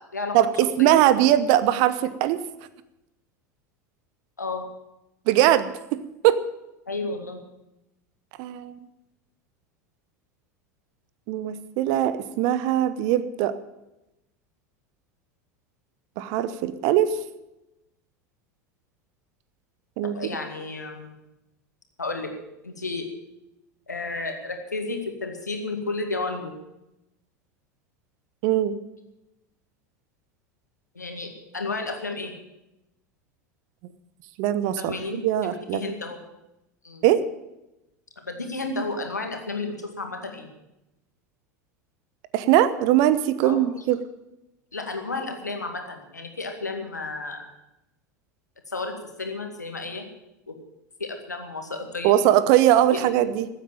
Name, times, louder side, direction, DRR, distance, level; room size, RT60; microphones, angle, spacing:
voice 1, 0.3-2.4 5.3-5.7 6.2-6.4 8.4-8.9 11.3-13.5 16.2-17.2 20.0-20.3 28.4-28.8 34.4-35.8 37.0-37.2 42.3-44.0 52.0-53.5, right 12 dB, 45° right, 14 dB, 0.9 m, -21 dB
voice 2, 6.9-7.4 20.1-21.2 22.0-22.3 22.6-23.1 23.9-26.5 31.0-32.3 34.8-35.2 35.4-36.2 36.8-37.0 38.3-40.5 43.4-43.6 44.7-47.5 48.7-50.1 50.5-50.6 51.0-52.1 52.9-53.1, left 3 dB, 80° left, 4 dB, 2.1 m, -32 dB
15.0 x 8.2 x 8.9 m, 0.93 s
figure-of-eight pair, 80°, 9 cm